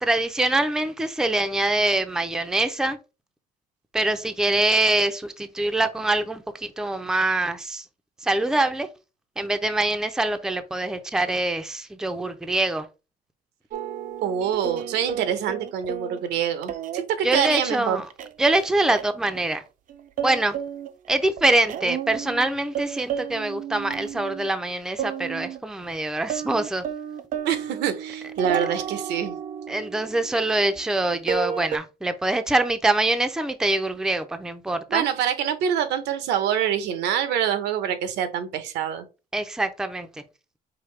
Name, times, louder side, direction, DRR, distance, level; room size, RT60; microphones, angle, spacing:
voice 1, 0.0-3.0 3.9-7.9 8.2-8.9 9.4-12.9 17.2-18.1 18.4-19.6 20.2-20.6 21.1-26.8 29.7-35.0 39.3-40.1, right 2 dB, 5° right, 0.5 m, -24 dB
sound 1, 13.7-16.3 16.6-17.0 17.3-17.7 18.1-19.4 19.7-21.1 21.4-22.5 22.7-24.7 25.0-25.6 25.9-26.0 26.3-31.0 31.3-31.8, right 8 dB, 50° right, 0.5 m, -32 dB
voice 2, 14.2-18.0 27.4-29.4 34.9-39.0, right 9 dB, 85° right, 0.8 m, -25 dB
5.0 x 2.7 x 3.2 m
cardioid pair, 110°, 17 cm